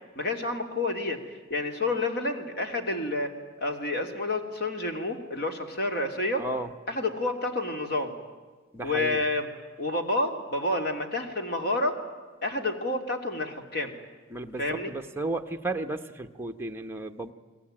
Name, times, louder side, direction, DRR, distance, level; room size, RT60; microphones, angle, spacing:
voice 1, 0.1-1.2 1.5-3.3 3.6-6.4 6.9-8.1 8.8-9.5 9.8-12.0 12.4-14.0 14.6-14.9, left 2 dB, 50° left, 5 dB, 3.0 m, -29 dB
voice 2, 6.4-6.7 8.7-9.2 14.3-17.3, right 2 dB, 10° right, 4 dB, 1.2 m, -34 dB
30.0 x 21.0 x 8.9 m, 1.4 s
head